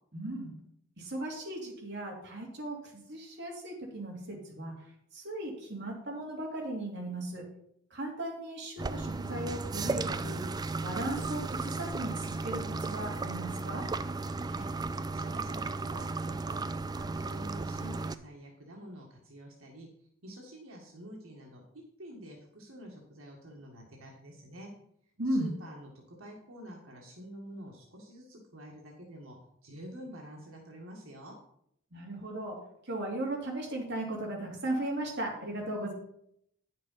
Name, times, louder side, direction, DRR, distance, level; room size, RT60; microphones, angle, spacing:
voice 1, 0.1-0.5 1.0-4.7 5.1-7.4 7.9-10.4 10.8-13.8 25.2-25.5 31.9-32.6 32.8-35.9, right 1 dB, 60° right, -1 dB, 2.9 m, -36 dB
sound 1, 8.8-18.2, right 3 dB, 20° right, 0.3 m, -35 dB
voice 2, 15.1-16.6 16.9-19.9 20.2-24.7 25.3-29.4 29.6-31.4, right 1 dB, 90° right, -1 dB, 1.9 m, -48 dB
9.6 x 6.6 x 5.6 m, 0.72 s
head